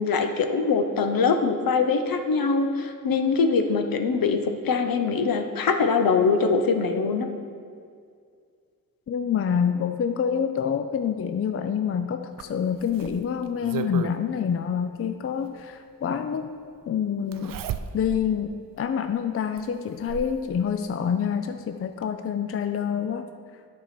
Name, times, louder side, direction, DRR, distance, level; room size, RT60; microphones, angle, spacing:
voice 1, 0.0-4.4 4.6-7.3, left 4 dB, 70° left, 6 dB, 0.8 m, -23 dB
voice 2, 9.1-16.5 16.9-17.6 17.9-23.3, left 7 dB, 40° left, 8 dB, 0.4 m, -27 dB
Zipper (clothing), 12.4-14.2 15.6-15.7 17.3-18.3 18.8-18.9 19.6-20.4 21.6-21.7 22.0-22.1, right 9 dB, 65° right, 0.5 m, -34 dB
9.7 x 4.8 x 5.9 m, 2.2 s
cardioid pair, 90°, 36 cm